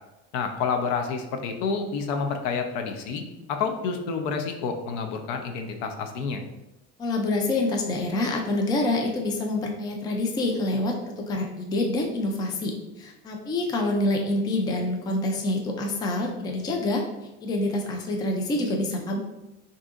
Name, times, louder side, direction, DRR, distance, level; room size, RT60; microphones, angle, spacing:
voice 1, 0.3-3.2 3.5-6.4, left 5 dB, 80° left, 5 dB, 0.7 m, -29 dB
voice 2, 7.0-17.0 17.4-19.2, left 2 dB, 15° left, 2 dB, 0.3 m, -26 dB
6.1 x 2.8 x 2.5 m, 0.98 s
cardioid pair, 165°, 29 cm